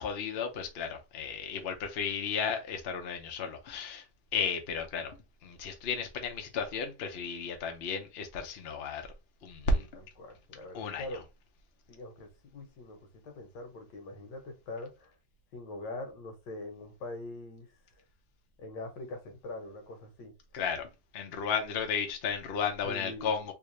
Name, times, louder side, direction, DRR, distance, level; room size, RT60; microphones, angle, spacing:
voice 1, 0.0-4.0 4.3-5.2 5.4-9.0 9.4-9.8 10.7-11.0 20.5-20.9 21.1-23.5, left 5 dB, 50° left, 0.7 m, -33 dB
voice 2, 9.7-11.2 11.9-15.1 15.5-17.7 18.6-20.3 22.8-23.5, left 2 dB, 90° left, 1.6 m, -43 dB
3.5 x 2.6 x 3.1 m
omnidirectional pair, 1.8 m